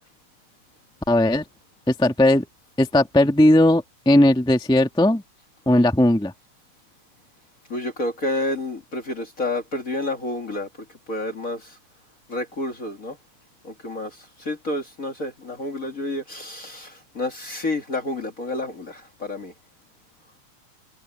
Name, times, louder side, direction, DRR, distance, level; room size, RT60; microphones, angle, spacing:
voice 1, 1.1-1.4 1.9-2.4 2.8-5.2 5.6-6.3, left 1 dB, ahead, 1.6 m, -17 dB
voice 2, 7.7-10.7 11.1-11.8 12.3-13.2 13.6-19.5, left 2 dB, 30° left, 2.2 m, -29 dB
omnidirectional pair, 3.3 m